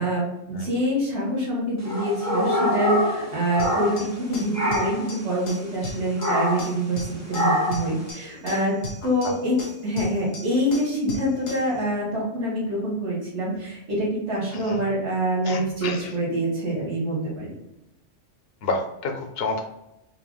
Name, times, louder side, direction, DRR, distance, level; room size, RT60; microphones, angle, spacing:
voice 1, 0.0-9.6 9.8-17.5, right 1 dB, 65° right, -6 dB, 1.6 m, -26 dB
sound 1, 1.8-4.2 4.5-5.1 6.2-6.7 7.3-7.9, left 1 dB, 20° right, 0.4 m, -25 dB
sound 2, 3.6-11.8, left 2 dB, 85° left, 1.4 m, -38 dB
voice 2, 14.5-14.9 15.4-16.1 18.6-19.7, left 3 dB, 60° left, 4 dB, 0.8 m, -29 dB
5.6 x 2.4 x 2.2 m, 0.91 s
omnidirectional pair, 1.3 m